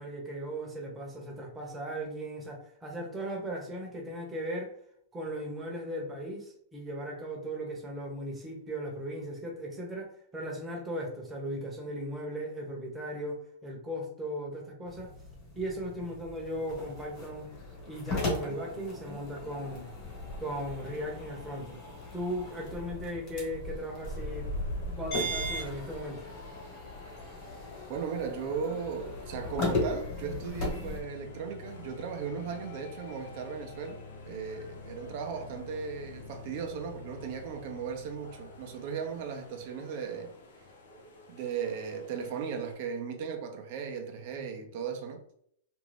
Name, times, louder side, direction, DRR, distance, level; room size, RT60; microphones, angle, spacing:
voice 1, 0.0-4.7 5.1-15.1 15.5-17.5 17.9-19.9 20.4-21.8 22.1-24.5 24.8-26.3 44.5-44.6, equal, 10° right, -1 dB, 0.9 m, -37 dB
sound 1, 14.9-31.0, left 1 dB, 40° left, 1.3 m, -37 dB
sound 2, 24.0-42.8, left 2 dB, 85° left, 0.8 m, -53 dB
voice 2, 27.9-34.0 34.3-40.3 41.3-45.2, right 6 dB, 50° right, 4 dB, 0.6 m, -37 dB
sound 3, 29.2-40.1, left 4 dB, 60° left, 0.6 m, -48 dB
2.5 x 2.4 x 3.3 m, 0.68 s
hypercardioid pair, 145°, 0 cm